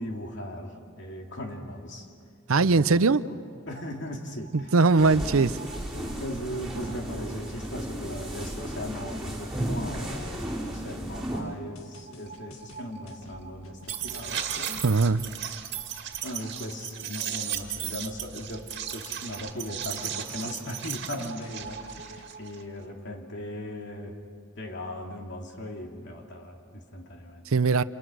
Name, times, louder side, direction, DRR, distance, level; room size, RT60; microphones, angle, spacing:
voice 1, 0.0-2.1 2.5-3.0 3.3-3.4 3.7-5.1 5.9-14.8 16.2-24.2 24.5-27.5, left 1 dB, 55° left, 1 dB, 2.8 m, -38 dB
voice 2, 2.5-3.2 4.5-5.5 14.8-15.3 27.5-27.8, right 4 dB, 75° right, 15 dB, 0.7 m, -20 dB
sound 1, 3.7-3.8 4.1-4.2 4.4-7.6 8.4-8.5 8.7-8.8 9.1-9.2 11.1-11.2 11.5-11.6 11.8-22.8, right 9 dB, 50° right, 2.2 m, -37 dB
sound 2, 5.0-11.4, right 1 dB, 5° right, 4.8 m, -34 dB
sound 3, 11.8-15.5 17.5-19.4 20.1-22.3, left 2 dB, 80° left, 2.0 m, -52 dB
29.5 x 28.5 x 6.3 m, 2.3 s
head